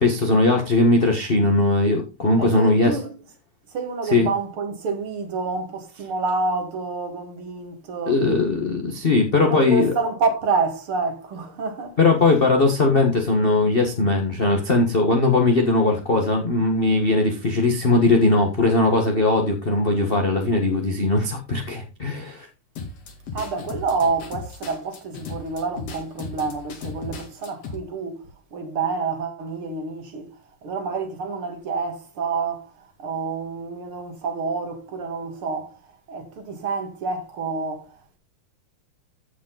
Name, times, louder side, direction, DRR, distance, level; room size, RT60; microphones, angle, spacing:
voice 1, 0.0-3.0 4.1-4.3 8.1-9.9 12.0-22.5, left 2 dB, 35° left, 0.8 m, -19 dB
voice 2, 2.3-3.1 3.7-8.2 9.4-12.0 23.3-30.3 30.6-38.2, right 4 dB, 50° right, 2.7 m, -28 dB
sound 1, 22.8-27.8, left 4 dB, 60° left, 3.0 m, -36 dB
15.0 x 5.1 x 3.9 m
omnidirectional pair, 3.3 m